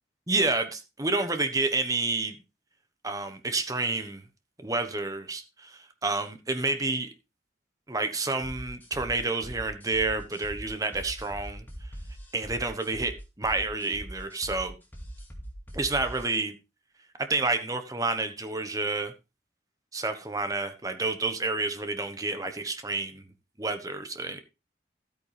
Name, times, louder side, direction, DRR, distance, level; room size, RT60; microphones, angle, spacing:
voice 1, 0.3-2.4 3.0-4.2 4.6-7.1 7.9-11.6 12.3-14.7 15.7-16.5 17.2-19.1 19.9-23.3 23.6-24.4, right 3 dB, 20° right, 8 dB, 1.1 m, -29 dB
sound 1, 8.4-16.4, equal, 10° left, 2.1 m, -42 dB
13.0 x 8.8 x 3.4 m, 0.27 s
head